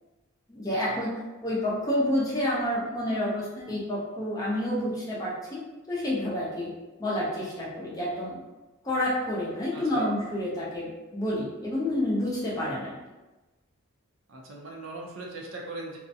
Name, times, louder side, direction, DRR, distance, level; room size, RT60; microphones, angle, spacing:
voice 1, 0.5-1.1 1.4-5.6 5.9-6.7 7.0-8.3 8.8-12.9, left 1 dB, 15° left, -6 dB, 0.5 m, -29 dB
voice 2, 9.7-10.1 14.3-16.0, right 2 dB, 60° right, -3 dB, 0.5 m, -39 dB
2.4 x 2.1 x 2.7 m, 1.1 s
head